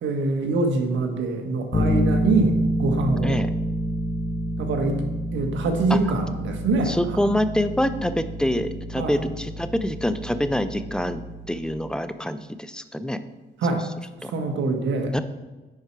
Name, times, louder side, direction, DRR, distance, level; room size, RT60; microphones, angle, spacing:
voice 1, 0.0-3.4 4.6-5.0 5.3-6.9 9.0-9.1 13.6-13.8 14.3-15.1, right 3 dB, 70° right, 4 dB, 1.4 m, -24 dB
Bass guitar, 1.7-11.6, equal, 25° left, 1.4 m, -28 dB
voice 2, 6.9-11.2 11.5-13.2 13.7-13.8 14.2-14.3 15.1-15.2, equal, 5° left, 11 dB, 0.5 m, -26 dB
9.7 x 4.4 x 4.7 m, 1.2 s
cardioid pair, 90°, 20 cm